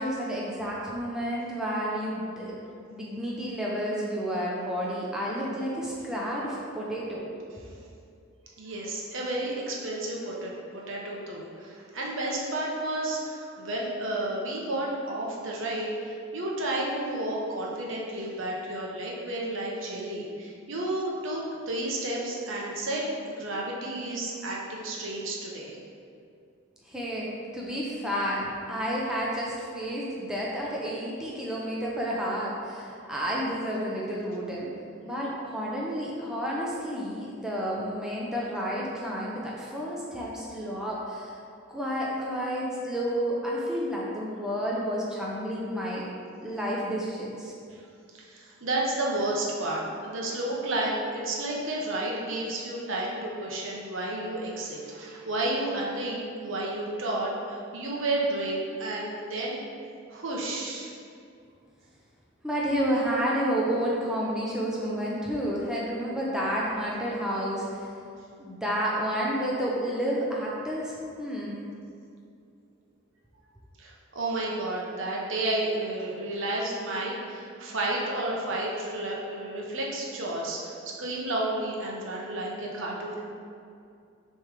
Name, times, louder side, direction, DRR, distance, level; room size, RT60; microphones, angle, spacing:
voice 1, 0.0-2.6 2.9-7.3 26.9-27.3 27.5-34.7 35.0-41.3 41.7-46.1 46.4-47.5 62.4-67.9 68.4-71.6, equal, 5° right, -5 dB, 0.7 m, -30 dB
voice 2, 8.6-23.0 23.4-25.8 48.1-59.6 60.1-60.9 73.8-83.2, right 1 dB, 70° right, -3 dB, 1.1 m, -31 dB
7.0 x 3.3 x 5.0 m, 2.4 s
head